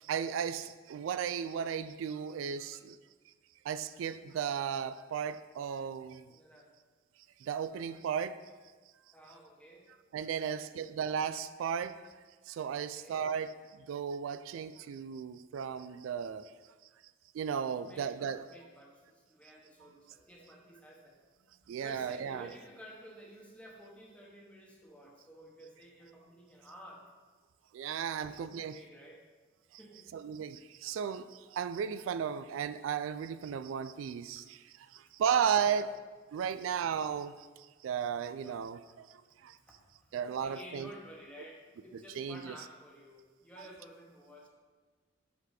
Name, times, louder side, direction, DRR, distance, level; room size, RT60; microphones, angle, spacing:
voice 1, 0.0-3.0 3.6-6.3 7.4-8.4 10.1-12.1 12.5-13.5 13.9-16.5 17.3-18.4 21.7-22.5 27.7-28.8 30.1-35.9 36.3-39.6 40.1-40.9 41.9-42.6 43.6-43.7, right 7 dB, 85° right, 14 dB, 0.3 m, -35 dB
voice 2, 6.3-6.7 9.1-9.9 10.3-10.7 12.7-13.2 17.8-21.2 21.8-27.0 28.1-29.2 29.8-30.1 34.4-34.5 35.6-35.9 38.5-38.6 38.8-39.0 39.7-39.8 40.4-44.5, equal, 5° left, -2 dB, 1.1 m, -53 dB
8.0 x 4.0 x 4.9 m, 1.4 s
head